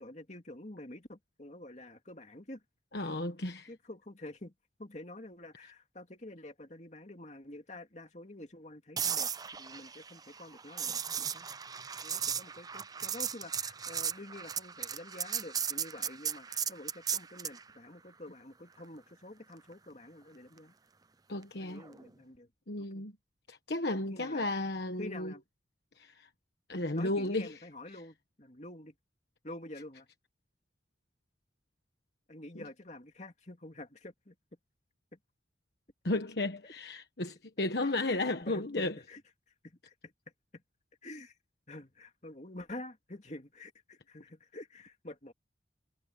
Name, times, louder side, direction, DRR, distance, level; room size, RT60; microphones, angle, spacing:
voice 1, 0.0-2.6 3.1-3.2 3.7-4.5 4.8-9.3 9.6-11.5 12.0-20.7 21.6-22.5 22.8-23.1 24.1-24.4 25.0-25.4 26.9-28.9 29.4-30.1 32.3-34.3 35.1-35.2 36.6-36.7 37.8-37.9 38.4-39.2 39.6-40.1 40.5-40.6 41.0-41.3 41.7-45.3, left 1 dB, 40° left, 2.7 m, -48 dB
voice 2, 2.9-3.7 21.3-21.8 22.7-23.1 23.5-25.3 26.0-26.3 26.7-27.5 36.0-38.9, left 2 dB, 65° left, 1.3 m, -33 dB
sound 1, 9.0-17.6 21.8-22.0, right 7 dB, 20° right, 0.5 m, -36 dB
head